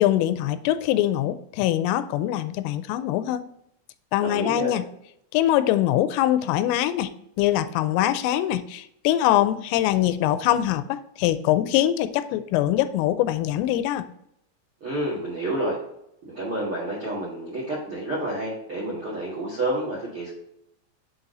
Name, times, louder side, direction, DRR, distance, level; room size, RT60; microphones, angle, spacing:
voice 1, 0.0-3.5 4.1-4.9 5.3-7.1 7.4-14.1, left 13 dB, 90° left, 12 dB, 3.2 m, -23 dB
voice 2, 4.2-4.7 14.8-15.8 16.2-20.3, right 1 dB, 60° right, -7 dB, 1.3 m, -29 dB
7.4 x 4.1 x 3.8 m, 0.77 s
omnidirectional pair, 5.8 m